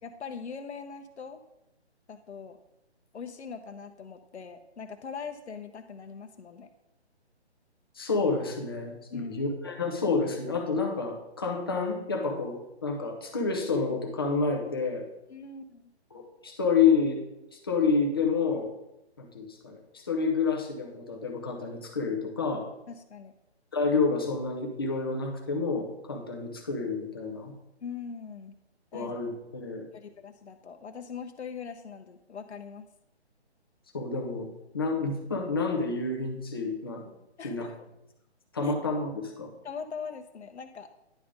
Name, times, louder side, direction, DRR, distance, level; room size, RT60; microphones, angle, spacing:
voice 1, 0.0-1.4 2.1-2.6 3.1-6.7 9.1-9.4 15.3-15.9 22.9-23.3 27.8-28.5 28.9-29.2 29.9-32.9 37.4-37.8 38.6-38.7 39.6-40.9, left 5 dB, 80° left, 6 dB, 0.8 m, -41 dB
voice 2, 8.0-15.1 16.1-17.2 17.6-18.7 19.2-22.7 23.7-27.5 28.9-29.8 33.9-34.5 34.7-37.0 37.4-37.7 38.5-39.5, left 4 dB, 20° left, 1 dB, 0.7 m, -29 dB
10.0 x 3.6 x 4.9 m, 0.89 s
hypercardioid pair, 170°, 34 cm